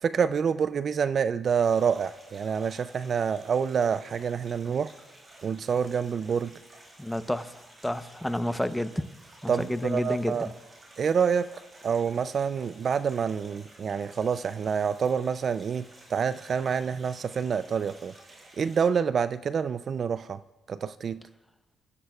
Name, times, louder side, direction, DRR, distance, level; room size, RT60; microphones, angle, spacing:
voice 1, 0.0-4.9 5.4-6.5 9.5-10.5 11.0-11.5 11.8-18.1 18.6-20.4 20.7-21.2, right 6 dB, 50° right, 0.4 m, -27 dB
sound 1, 1.4-18.9, right 1 dB, 35° right, 5.7 m, -53 dB
voice 2, 7.0-9.0 9.4-10.5, left 1 dB, 5° left, 0.7 m, -30 dB
30.0 x 14.5 x 2.4 m
cardioid pair, 90°, 0 cm